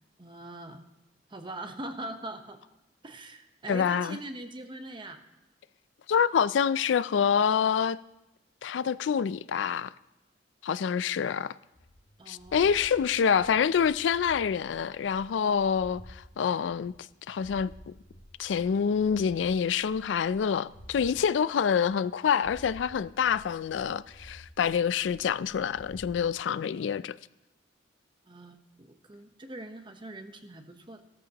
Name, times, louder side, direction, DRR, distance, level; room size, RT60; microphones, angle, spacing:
voice 1, 0.2-0.8 1.3-2.6 3.0-5.2 12.2-12.7 28.3-31.0, right 1 dB, 25° right, 0.9 m, -42 dB
voice 2, 3.7-4.2 6.1-8.0 8.6-9.9 10.6-11.5 12.3-16.9 17.3-17.7 18.4-27.2, left 7 dB, 90° left, 0.4 m, -26 dB
sound 1, 11.7-16.2 16.6-21.2 21.6-22.1 22.4-26.2, equal, 40° left, 1.3 m, -52 dB
15.0 x 13.5 x 2.9 m
head